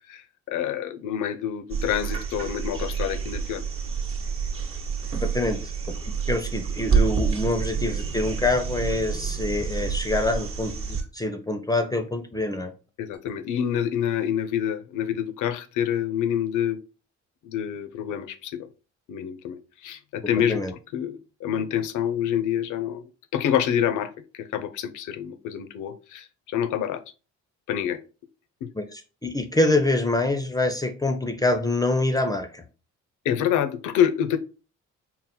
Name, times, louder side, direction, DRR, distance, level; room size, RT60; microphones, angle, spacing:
voice 1, 0.1-3.6 13.0-16.8 17.4-18.7 19.1-20.6 20.9-27.0 27.7-28.0 28.6-28.7 33.2-34.4, left 9 dB, 80° left, 10 dB, 0.6 m, -27 dB
sound 1, 1.7-11.0 13.1-13.2, right 6 dB, 45° right, 1.0 m, -28 dB
voice 2, 5.2-5.6 6.0-12.7 20.5-20.7 28.7-32.6, left 2 dB, 10° left, 6 dB, 0.5 m, -25 dB
3.8 x 2.1 x 4.2 m, 0.34 s
cardioid pair, 90°, 30 cm